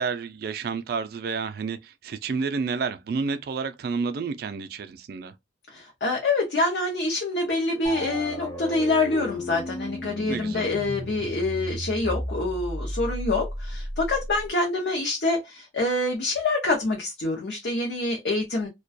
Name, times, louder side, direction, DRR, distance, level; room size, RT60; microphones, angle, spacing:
voice 1, 0.0-5.3 10.3-10.7, right 5 dB, 55° right, 0.3 m, -30 dB
voice 2, 5.7-18.7, left 2 dB, 65° left, 0.5 m, -26 dB
sound 1, 7.8-14.5, equal, 15° left, 0.4 m, -34 dB
2.3 x 2.2 x 2.5 m
head